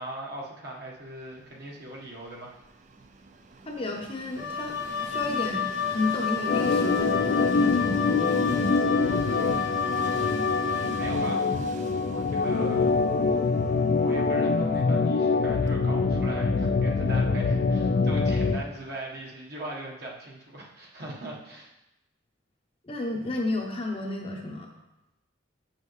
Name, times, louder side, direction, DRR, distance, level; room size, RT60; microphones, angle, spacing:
voice 1, 0.0-2.6 9.3-10.3 11.0-11.4 12.1-12.9 14.0-21.7, right 1 dB, 55° right, -3 dB, 1.3 m, -40 dB
Train, 1.1-19.1, right 2 dB, 40° right, 0.4 m, -43 dB
voice 2, 3.7-4.8 5.0-8.5 22.8-24.7, left 2 dB, 30° left, 1 dB, 0.8 m, -32 dB
Wind instrument woodwind instrument, 4.4-11.1, left 7 dB, 75° left, 0.7 m, -31 dB
Organ, 6.5-18.6, left 4 dB, 50° left, 0.3 m, -24 dB
7.3 x 6.2 x 3.2 m, 0.91 s
head